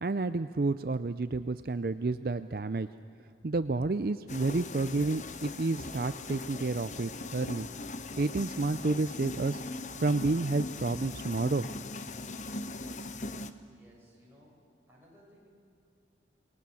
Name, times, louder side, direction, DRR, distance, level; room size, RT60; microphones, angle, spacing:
voice 1, 0.0-2.9 3.4-7.7 8.2-9.6 10.0-11.7, right 3 dB, 55° right, 12 dB, 0.5 m, -30 dB
sound 1, 4.3-13.5, left 3 dB, 45° left, 0.9 m, -40 dB
voice 2, 13.7-14.6 14.9-15.5, equal, 15° right, -5 dB, 8.0 m, -59 dB
28.5 x 20.0 x 7.1 m, 2.4 s
head